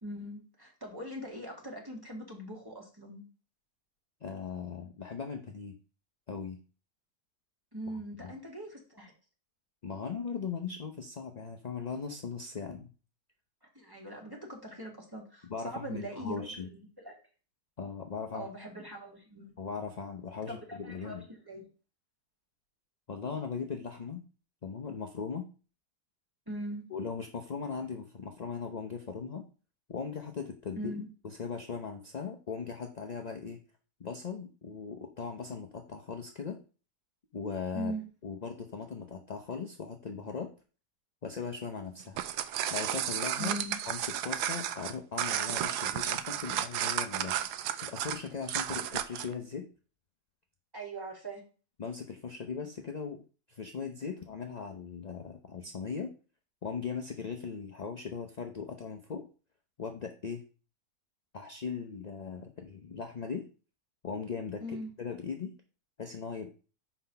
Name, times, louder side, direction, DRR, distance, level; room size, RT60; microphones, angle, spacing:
voice 1, 0.0-3.2 7.7-9.1 13.6-16.7 17.0-17.2 18.3-19.5 20.5-21.7 26.5-26.9 30.7-31.1 37.7-38.1 43.4-43.8 50.7-51.4 64.6-64.9, right 1 dB, 15° right, 0 dB, 1.9 m, -41 dB
voice 2, 4.2-5.7 6.3-6.6 8.2-8.3 9.8-12.9 15.5-16.7 17.8-18.5 19.6-21.2 23.1-24.2 24.6-25.5 26.9-29.5 29.9-33.6 34.0-36.6 37.3-37.9 38.2-40.5 41.2-42.2 42.7-43.5 43.9-47.3 47.8-49.7 51.8-53.2 53.5-56.1 56.6-59.3 59.8-60.4 61.3-63.5 64.0-65.5 66.0-66.5, left 5 dB, 50° left, 4 dB, 0.5 m, -39 dB
sound 1, 42.0-49.3, right 11 dB, 90° right, 1.2 m, -33 dB
5.9 x 5.1 x 5.6 m, 0.36 s
omnidirectional pair, 1.7 m